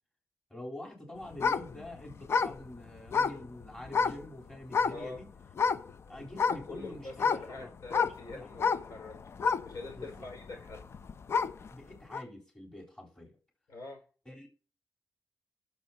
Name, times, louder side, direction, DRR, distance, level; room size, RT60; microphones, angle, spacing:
voice 1, 0.5-5.3 6.1-7.7 8.0-8.4 9.9-10.3 11.7-13.3 14.3-14.5, left 1 dB, 15° left, 3.8 m, -46 dB
sound 1, 1.3-4.3 4.7-5.2 5.5-5.9 6.3-11.7 12.1-12.2, left 5 dB, 50° left, 0.6 m, -29 dB
voice 2, 4.9-5.2 6.1-9.2 9.6-10.9 13.7-14.0, left 3 dB, 75° left, 5.0 m, -44 dB
18.5 x 7.1 x 2.9 m
wide cardioid pair, 140°, 6 cm